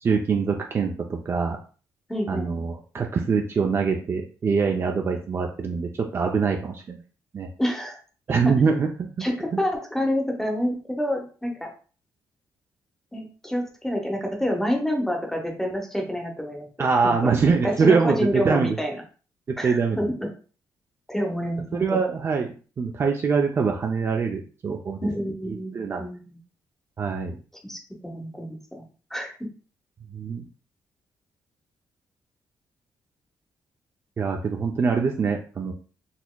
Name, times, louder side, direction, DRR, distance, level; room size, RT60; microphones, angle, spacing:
voice 1, 0.0-1.6 2.3-7.0 7.3-7.5 8.3-9.2 16.8-18.8 19.5-20.0 21.7-22.5 22.8-25.0 25.5-26.1 27.0-27.4 30.1-30.5 34.2-35.7, right 5 dB, 35° right, 2 dB, 0.4 m, -24 dB
voice 2, 2.1-2.5 7.6-8.0 9.2-11.7 13.1-16.7 17.0-17.3 17.6-19.0 19.6-20.3 21.1-21.8 25.0-26.4 27.6-28.8 29.1-29.5, equal, 5° left, 2 dB, 0.8 m, -28 dB
4.1 x 2.8 x 2.2 m, 0.38 s
cardioid pair, 140°, 7 cm